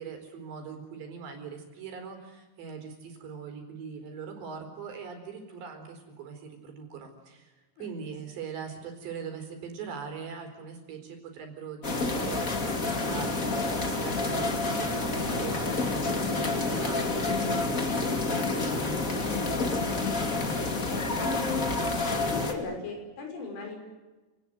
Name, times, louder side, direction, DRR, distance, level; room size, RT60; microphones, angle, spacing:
voice 1, 0.0-13.7 14.0-19.1, right 6 dB, 60° right, 5 dB, 6.4 m, -42 dB
sound 1, 11.8-22.5, left 3 dB, 30° left, 1.7 m, -28 dB
voice 2, 20.9-21.8 22.3-23.8, left 4 dB, 80° left, 3 dB, 8.4 m, -37 dB
29.0 x 20.0 x 7.9 m, 1.2 s
omnidirectional pair, 5.5 m